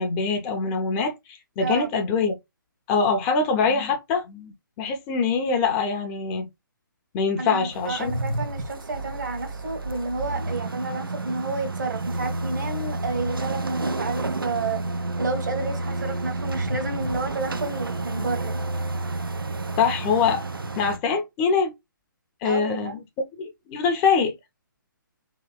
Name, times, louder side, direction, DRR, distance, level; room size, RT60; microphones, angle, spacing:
voice 1, 0.0-2.4 2.9-6.5 7.1-8.1 19.8-20.4 20.8-21.7 22.4-22.9 23.4-24.3, left 5 dB, 20° left, 0.5 m, -24 dB
voice 2, 7.4-14.8 15.2-18.6 22.4-23.0, right 3 dB, 60° right, 1.1 m, -30 dB
sound 1, 7.7-21.0, right 2 dB, 90° right, 0.5 m, -30 dB
2.9 x 2.8 x 2.2 m
figure-of-eight pair, 135°, 11 cm